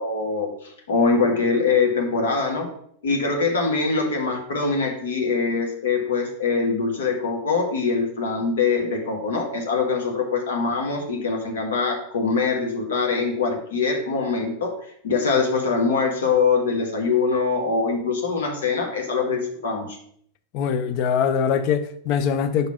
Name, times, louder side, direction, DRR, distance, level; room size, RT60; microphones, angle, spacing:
voice 1, 0.0-2.7 3.0-14.7 15.0-20.0, left 4 dB, 60° left, 1.4 m, -23 dB
voice 2, 20.5-22.7, left 7 dB, 45° left, 0.6 m, -22 dB
5.3 x 4.1 x 5.6 m
figure-of-eight pair, 90°, 0 cm